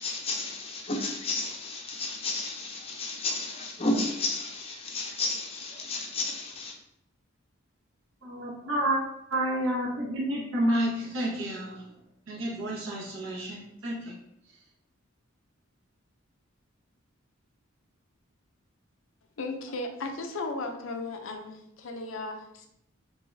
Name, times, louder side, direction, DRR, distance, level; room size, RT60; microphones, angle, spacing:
voice 1, 0.0-6.8, left 2 dB, 30° left, 0.6 m, -32 dB
voice 2, 8.2-9.0 9.3-11.9 12.3-14.2, right 1 dB, 70° right, 1.4 m, -30 dB
voice 3, 19.4-22.7, left 2 dB, 70° left, 0.6 m, -36 dB
3.9 x 3.7 x 2.6 m
head